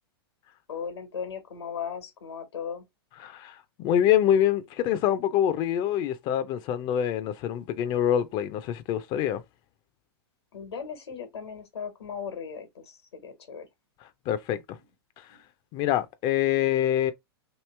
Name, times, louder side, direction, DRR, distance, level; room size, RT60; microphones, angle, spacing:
voice 1, 0.7-2.9 10.5-13.7 15.3-15.4, left 7 dB, 90° left, 1.3 m, -37 dB
voice 2, 3.2-9.4 14.3-14.8 15.2-15.3 15.7-17.1, left 10 dB, 35° left, 0.5 m, -25 dB
3.0 x 2.8 x 3.2 m
hypercardioid pair, 125°, 13 cm